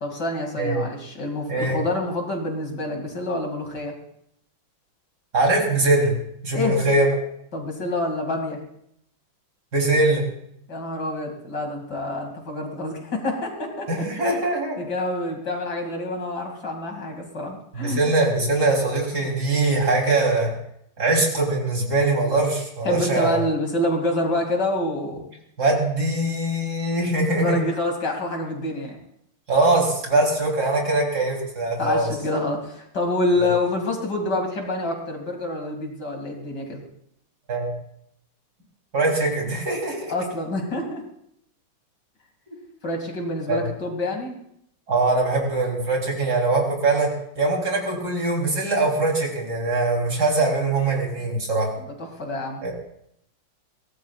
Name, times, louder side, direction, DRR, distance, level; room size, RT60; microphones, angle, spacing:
voice 1, 0.0-3.9 6.5-6.8 7.5-8.6 10.7-13.9 14.3-14.4 14.8-18.0 22.8-25.3 27.4-29.0 31.8-36.8 40.1-41.0 42.8-44.4 51.8-52.6, left 1 dB, 55° left, 2 dB, 3.0 m, -27 dB
voice 2, 5.3-6.1 6.4-7.1 9.7-10.2 13.9-14.8 17.7-20.5 21.0-23.4 25.6-27.6 29.5-32.1 37.5-37.7 38.9-40.1 43.5-43.6 44.9-47.1 47.4-51.7 52.6-52.7, right 2 dB, 50° right, -1 dB, 3.9 m, -22 dB
23.0 x 17.5 x 2.4 m, 0.74 s
omnidirectional pair, 2.2 m